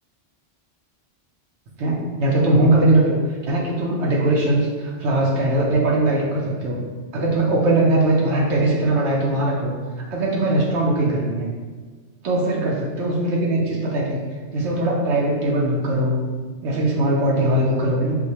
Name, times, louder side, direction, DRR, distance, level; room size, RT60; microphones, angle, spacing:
voice 1, 1.8-3.2 3.4-6.8 7.1-9.7 10.1-11.5 12.2-14.2 14.5-16.3 16.6-18.2, right 1 dB, 75° right, -3 dB, 0.9 m, -20 dB
4.7 x 2.1 x 2.8 m, 1.4 s
omnidirectional pair, 1.2 m